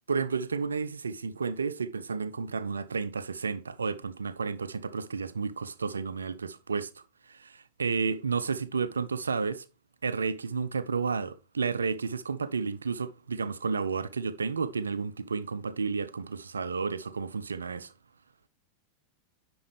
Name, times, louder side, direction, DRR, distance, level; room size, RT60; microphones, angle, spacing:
voice 1, 0.1-6.9 7.3-9.6 10.0-17.9, right 5 dB, 75° right, 0.5 m, -31 dB
10.5 x 4.3 x 3.3 m
figure-of-eight pair, 90°, 0 cm